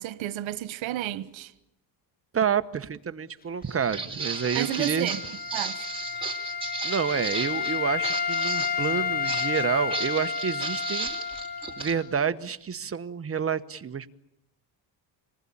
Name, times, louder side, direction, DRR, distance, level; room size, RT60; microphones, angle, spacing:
voice 1, 0.0-1.5 4.5-5.2 5.5-5.9, right 13 dB, 80° right, 1.4 m, -31 dB
voice 2, 2.3-5.1 6.8-11.2 11.8-14.1, right 7 dB, 30° right, 1.1 m, -29 dB
Walk footsteps, 3.6-11.9, right 4 dB, 10° right, 4.7 m, -35 dB
Wind instrument woodwind instrument, 4.3-12.1, left 6 dB, 20° left, 1.2 m, -31 dB
27.0 x 19.5 x 8.7 m
cardioid pair, 110°, 46 cm